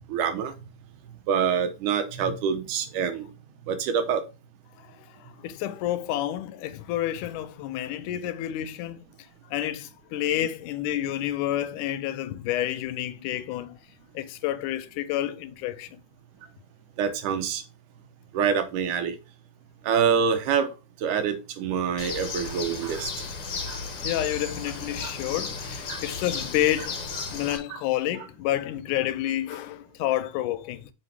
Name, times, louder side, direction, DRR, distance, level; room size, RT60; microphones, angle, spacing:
voice 1, 0.1-0.5 1.3-3.3 3.7-4.2 17.0-17.6 18.3-19.2 19.8-20.7 21.0-23.1 23.7-23.8 25.0-25.1 25.9-26.0 27.5-27.8, right 7 dB, 80° right, 2.4 m, -26 dB
voice 2, 4.8-9.0 9.5-13.8 14.1-16.0 24.0-30.9, left 13 dB, 90° left, 2.1 m, -29 dB
Bird, 22.0-27.6, left 4 dB, 55° left, 1.9 m, -34 dB
6.0 x 5.9 x 3.4 m
omnidirectional pair, 3.6 m